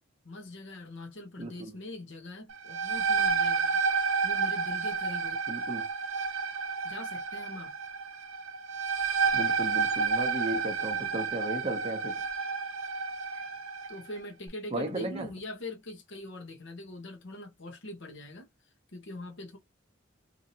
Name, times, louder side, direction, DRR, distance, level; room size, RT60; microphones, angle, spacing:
voice 1, 0.2-3.8 4.2-5.4 6.8-7.7 13.9-18.5 18.9-19.6, left 2 dB, 65° left, 0.9 m, -42 dB
voice 2, 1.4-1.8 5.5-5.9 9.3-12.2 14.7-15.3, right 2 dB, 30° right, 0.6 m, -35 dB
sound 1, 2.5-14.0, right 5 dB, 85° right, 0.6 m, -30 dB
2.9 x 2.7 x 2.7 m
head